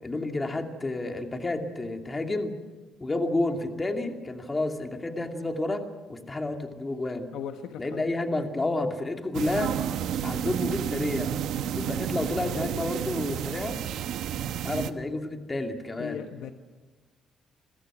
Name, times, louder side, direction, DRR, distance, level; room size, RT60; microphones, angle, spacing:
voice 1, 0.0-2.5 3.0-5.8 6.1-7.3 7.8-9.8 10.2-11.3 11.7-13.8 14.6-16.2, left 2 dB, 20° left, 5 dB, 2.5 m, -30 dB
voice 2, 7.3-8.0 16.0-16.5, left 9 dB, 85° left, 6 dB, 1.3 m, -37 dB
sound 1, 9.3-14.9, right 10 dB, 75° right, 1.2 m, -31 dB
29.0 x 22.5 x 6.2 m, 1.3 s
cardioid pair, 145°, 0 cm